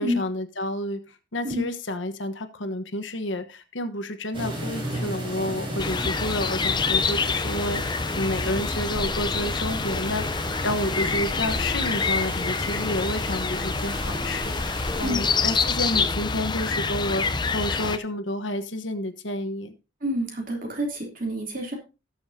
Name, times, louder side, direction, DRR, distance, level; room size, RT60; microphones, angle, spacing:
voice 1, 0.0-7.8 8.1-19.7, left 1 dB, 75° left, 8 dB, 1.2 m, -30 dB
sound 1, 4.3-15.1, right 1 dB, 25° right, 4.2 m, -36 dB
sound 2, 5.8-18.0, left 4 dB, 25° left, 0.5 m, -27 dB
voice 2, 20.0-21.7, equal, 45° right, 1 dB, 3.1 m, -28 dB
18.0 x 7.1 x 2.7 m, 0.29 s
head